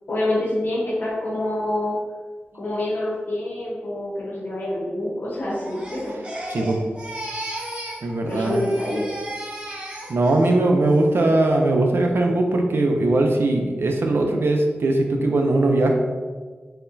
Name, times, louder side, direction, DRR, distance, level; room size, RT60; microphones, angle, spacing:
voice 1, 0.1-1.9 2.6-6.2 8.3-9.2, left 1 dB, 60° left, -8 dB, 0.9 m, -26 dB
Crying sobbing, 5.5-8.0 8.3-10.5 10.9-11.3, right 1 dB, 25° right, 0.8 m, -35 dB
voice 2, 8.0-8.6 10.1-15.9, right 2 dB, 75° right, 2 dB, 0.5 m, -20 dB
4.2 x 2.2 x 3.8 m, 1.5 s
wide cardioid pair, 100°, 4 cm